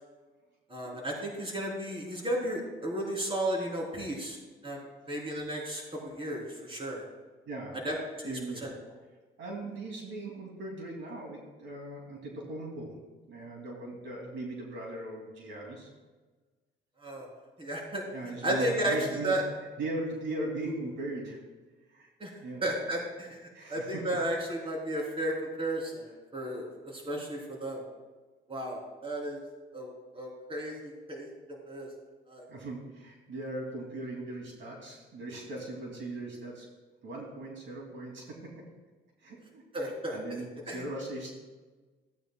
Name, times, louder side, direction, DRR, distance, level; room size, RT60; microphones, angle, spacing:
voice 1, 0.7-4.4 4.6-7.0 7.8-8.7 17.0-17.3 17.6-18.0 18.4-19.4 22.2-22.3 22.6-23.4 23.7-26.0 26.3-27.8 28.5-29.4 29.7-31.9 32.3-32.4 39.7-40.4 40.7-40.8, right 1 dB, 25° right, -2 dB, 3.3 m, -34 dB
voice 2, 7.4-7.8 8.2-8.7 9.4-13.0 13.3-15.9 18.1-19.3 19.8-21.4 21.9-22.1 22.4-22.6 23.5-24.0 27.1-27.2 32.5-36.7 37.0-38.5 39.2-41.3, right 2 dB, 70° right, -1 dB, 2.6 m, -39 dB
16.0 x 9.1 x 2.3 m, 1.3 s
cardioid pair, 90°, 20 cm